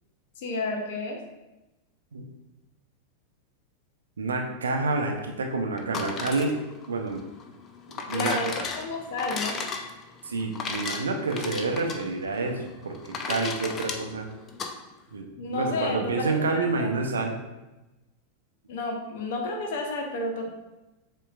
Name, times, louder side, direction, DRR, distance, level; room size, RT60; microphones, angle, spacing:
voice 1, 0.4-1.2 8.1-9.6 15.4-16.9 18.7-20.5, left 2 dB, 55° left, 2 dB, 0.8 m, -31 dB
voice 2, 4.2-6.6 6.9-7.2 8.0-8.4 10.2-13.0 13.3-14.3 15.1-17.4, right 3 dB, 70° right, 3 dB, 0.6 m, -28 dB
sound 1, 5.8-14.7, left 4 dB, 25° left, 0.5 m, -35 dB
7.1 x 2.9 x 2.4 m, 1.0 s
figure-of-eight pair, 90°, 0 cm